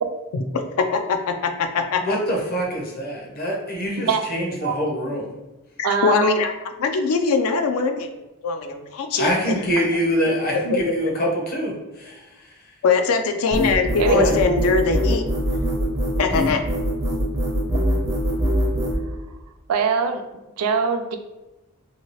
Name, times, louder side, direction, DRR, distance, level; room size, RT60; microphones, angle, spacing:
voice 1, 0.3-2.2 5.8-6.5 6.8-8.1 8.4-9.3 12.8-15.2 16.2-16.6, left 4 dB, 75° left, 6 dB, 0.3 m, -22 dB
voice 2, 2.0-5.3 9.2-12.2 14.1-14.4, equal, 40° left, -1 dB, 0.7 m, -24 dB
voice 3, 5.8-6.4 9.8-9.9 14.0-14.3 19.7-20.2 20.6-21.2, right 5 dB, 85° right, 6 dB, 0.4 m, -22 dB
sound 1, 13.5-19.0, equal, 15° right, 0.4 m, -22 dB
2.8 x 2.7 x 3.0 m, 1.0 s
head